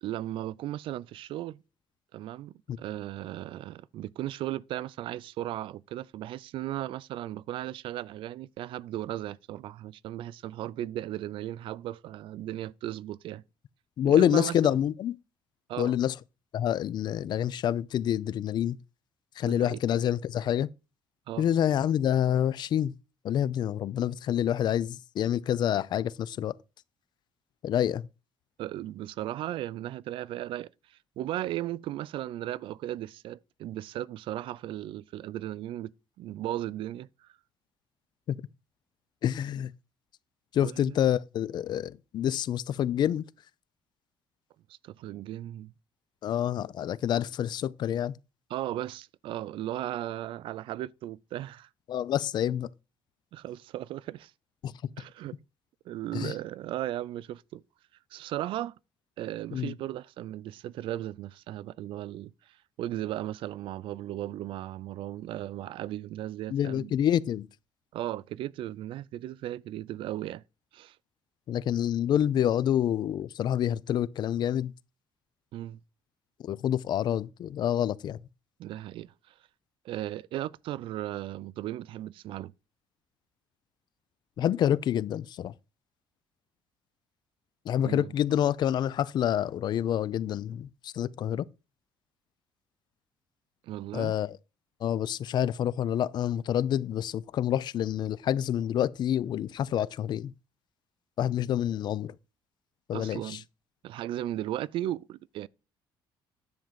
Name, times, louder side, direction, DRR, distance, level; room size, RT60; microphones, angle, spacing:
voice 1, 0.0-1.6 2.1-13.4 14.0-14.6 15.7-15.9 19.4-19.8 21.3-21.5 28.6-35.9 36.2-37.3 40.6-41.0 44.8-45.7 48.5-51.7 53.3-54.3 55.0-55.4 55.9-57.6 58.1-58.8 59.2-67.0 67.9-70.4 70.7-71.0 75.5-75.8 78.6-79.3 79.8-82.5 87.8-88.1 93.6-94.2 102.9-103.4 103.8-105.5, right 13 dB, 70° right, 0.4 m, -36 dB
voice 2, 14.0-15.1 15.8-16.1 16.5-18.8 19.4-20.7 21.4-22.9 23.2-26.5 27.6-28.0 38.3-38.4 39.2-39.7 40.5-43.3 46.2-48.2 51.9-52.7 54.6-54.7 56.1-56.3 59.5-59.7 66.5-67.5 71.5-74.7 76.4-78.2 84.4-85.5 87.7-91.5 93.9-94.3 94.8-100.3 101.2-102.1 102.9-103.4, left 10 dB, 50° left, 0.5 m, -27 dB
10.5 x 3.7 x 7.4 m
cardioid pair, 135°, 9 cm